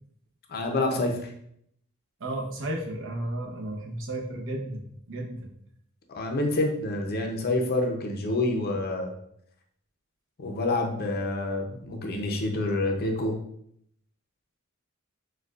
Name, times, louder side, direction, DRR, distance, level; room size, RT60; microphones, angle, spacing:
voice 1, 0.5-1.3 6.1-9.1 10.4-13.4, left 2 dB, 45° left, 2 dB, 0.6 m, -27 dB
voice 2, 2.2-5.5, right 1 dB, 60° right, 0 dB, 0.8 m, -33 dB
6.3 x 2.3 x 2.4 m, 0.71 s
head